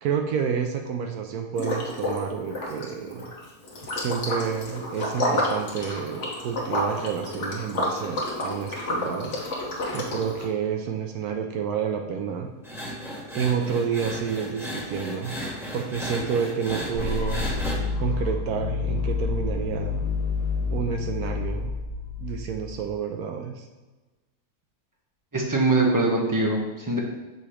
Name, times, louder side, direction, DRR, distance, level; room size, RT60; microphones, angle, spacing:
voice 1, 0.0-3.3 3.9-9.4 9.9-12.5 13.3-15.4 15.7-17.6 18.0-20.0 20.7-21.7 22.2-23.7, right 7 dB, 70° right, 4 dB, 1.0 m, -29 dB
Liquid, 1.6-2.2 2.5-10.5, left 1 dB, 50° left, 1.4 m, -30 dB
sound 1, 12.6-17.8, equal, ahead, 1.6 m, -34 dB
sound 2, 16.9-22.9, left 4 dB, 65° left, 1.9 m, -29 dB
voice 2, 25.3-27.0, right 2 dB, 20° right, -1 dB, 0.6 m, -22 dB
6.9 x 2.9 x 4.8 m, 1.2 s
omnidirectional pair, 1.7 m